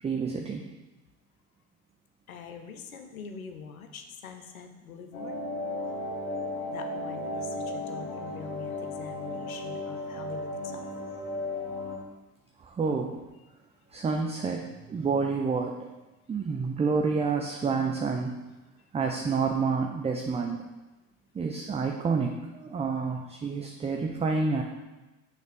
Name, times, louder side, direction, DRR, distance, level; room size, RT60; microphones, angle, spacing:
voice 1, 0.0-0.7 12.6-13.2 13.9-15.9 16.3-18.4 18.9-20.6 21.3-24.6, right 4 dB, 15° right, 2 dB, 0.5 m, -29 dB
voice 2, 2.3-5.5 6.6-10.9, left 6 dB, 90° left, 6 dB, 0.7 m, -44 dB
sound 1, 5.1-12.0, left 1 dB, 65° left, 1.5 m, -35 dB
6.4 x 3.4 x 5.1 m, 1.1 s
hypercardioid pair, 65°, 41 cm